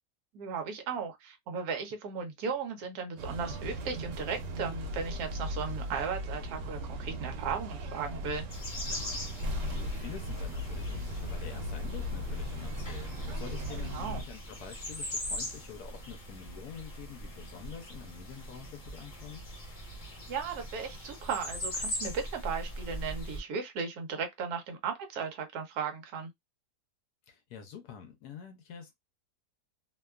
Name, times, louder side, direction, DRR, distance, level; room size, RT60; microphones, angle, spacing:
voice 1, 0.3-8.4 13.8-14.2 20.3-26.3, right 6 dB, 70° right, 1.1 m, -36 dB
sound 1, 3.2-14.2, equal, 90° right, 1.2 m, -37 dB
sound 2, 8.5-23.4, equal, 35° left, 1.0 m, -41 dB
voice 2, 9.3-19.4 27.3-28.9, left 7 dB, 75° left, 1.1 m, -47 dB
2.9 x 2.2 x 2.2 m
omnidirectional pair, 1.8 m